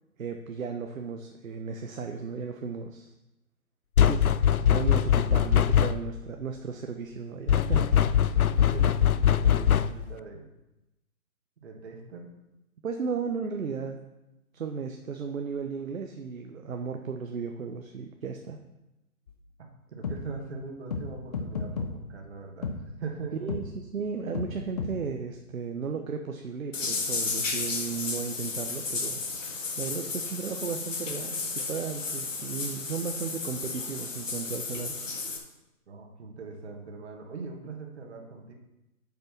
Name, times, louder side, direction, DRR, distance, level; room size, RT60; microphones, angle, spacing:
voice 1, 0.2-3.1 4.0-4.2 4.7-7.9 12.8-14.0 14.5-18.6 23.4-29.2 29.8-35.0, right 5 dB, 65° right, 4 dB, 1.0 m, -35 dB
sound 1, 4.0-6.2 7.5-10.1, left 9 dB, 75° left, 0.6 m, -22 dB
voice 2, 8.4-10.5 11.6-12.3 19.9-23.5 35.9-38.5, right 4 dB, 50° right, 2 dB, 2.0 m, -41 dB
sound 2, 19.3-19.4 20.0-20.2 20.9-21.0 21.3-21.9 22.6-22.8 23.5-23.6 24.3-24.5 24.8-24.9, left 5 dB, 25° left, 0.8 m, -31 dB
sound 3, 26.7-35.4, left 4 dB, 60° left, 2.1 m, -33 dB
9.0 x 5.5 x 6.1 m, 0.97 s
figure-of-eight pair, 145°, 44 cm